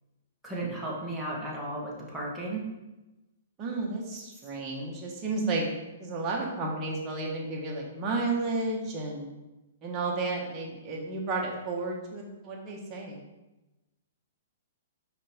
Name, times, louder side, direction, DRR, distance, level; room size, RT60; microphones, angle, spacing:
voice 1, 0.4-2.6 4.1-4.2, right 2 dB, ahead, -6 dB, 1.6 m, -35 dB
voice 2, 3.6-5.6 6.0-9.4 9.8-13.2, right 3 dB, 25° right, -2 dB, 1.5 m, -32 dB
5.5 x 5.0 x 3.7 m, 1.0 s
hypercardioid pair, 135°, 0 cm